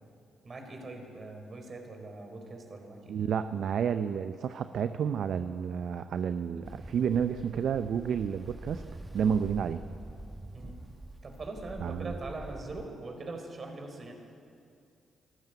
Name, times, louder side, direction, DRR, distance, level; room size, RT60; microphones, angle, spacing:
voice 1, 0.4-3.2 10.5-10.8 11.2-14.1, right 2 dB, 45° right, 4 dB, 4.6 m, -42 dB
voice 2, 3.1-8.8 9.1-9.8 11.8-12.1, right 7 dB, 60° right, 11 dB, 0.6 m, -30 dB
Ocean, 6.6-12.9, right 1 dB, 20° right, 1.3 m, -45 dB
24.0 x 14.5 x 8.1 m, 2.4 s
hypercardioid pair, 40°, 0 cm